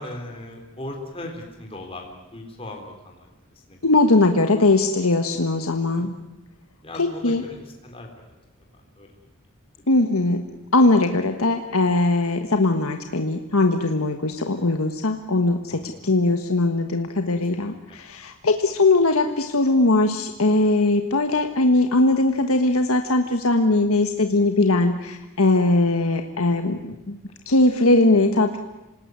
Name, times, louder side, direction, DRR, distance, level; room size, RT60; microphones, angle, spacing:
voice 1, 0.0-3.3 3.7-3.8 6.0-6.3 6.8-8.1 9.0-9.1 15.7-16.2 17.6-18.0, left 1 dB, 25° left, 1 dB, 3.8 m, -38 dB
voice 2, 3.8-6.1 6.9-7.4 9.9-10.5 10.7-27.2 27.5-28.6, left 2 dB, 80° left, 6 dB, 1.5 m, -20 dB
27.0 x 19.0 x 9.6 m, 1.0 s
head